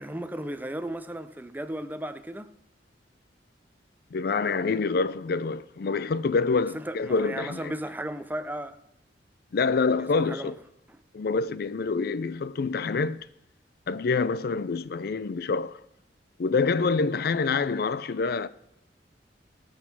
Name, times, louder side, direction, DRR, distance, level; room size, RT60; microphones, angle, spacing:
voice 1, 0.0-2.5 6.7-8.8 10.0-10.5 10.9-11.0, right 1 dB, 10° right, 0.6 m, -35 dB
voice 2, 4.1-7.7 9.5-10.5 11.1-13.3 13.9-15.8 16.4-18.5, left 4 dB, 55° left, 0.4 m, -26 dB
17.0 x 6.4 x 6.1 m
head